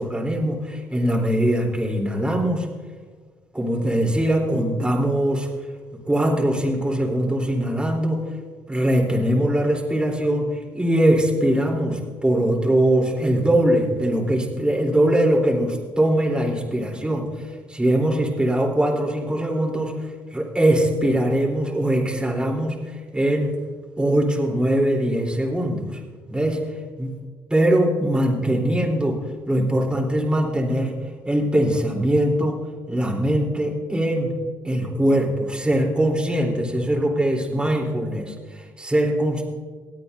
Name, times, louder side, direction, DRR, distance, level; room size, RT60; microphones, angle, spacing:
voice 1, 0.0-2.7 3.5-5.5 6.1-8.2 8.7-23.5 24.0-26.0 26.3-26.6 27.0-27.1 27.5-29.2 29.5-30.9 31.2-32.5 32.9-34.3 34.6-39.4, right 1 dB, 10° right, -1 dB, 3.7 m, -21 dB
24.5 x 8.7 x 2.7 m, 1.5 s
supercardioid pair, 65°, 8 cm